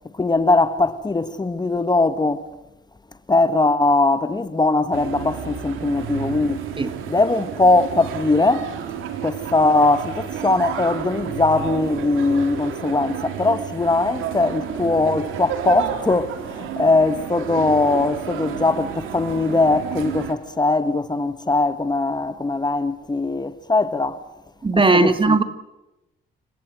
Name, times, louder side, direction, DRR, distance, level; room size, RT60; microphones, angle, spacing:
voice 1, 0.2-2.4 3.3-6.6 7.1-8.7 9.2-24.2 24.9-25.4, left 2 dB, 20° left, 1.6 m, -20 dB
sound 1, 4.9-20.3, right 8 dB, 90° right, 3.4 m, -31 dB
voice 2, 24.6-25.4, right 3 dB, 25° right, 2.1 m, -17 dB
29.5 x 18.0 x 7.8 m
cardioid pair, 90°, 20 cm